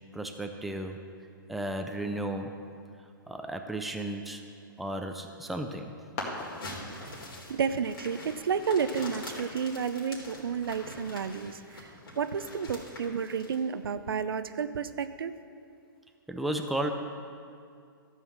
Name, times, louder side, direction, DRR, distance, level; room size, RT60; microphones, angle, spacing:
voice 1, 0.1-1.0 1.5-2.6 3.3-4.4 4.8-5.9 16.3-16.9, right 1 dB, ahead, 4 dB, 0.4 m, -34 dB
sound 1, 5.2-10.4, left 2 dB, 40° left, 2.0 m, -45 dB
sound 2, 6.3-13.6, left 1 dB, 90° left, 3.1 m, -45 dB
voice 2, 7.5-15.3, right 6 dB, 85° right, 12 dB, 0.6 m, -31 dB
13.5 x 5.7 x 6.4 m, 2.3 s
hypercardioid pair, 145°, 12 cm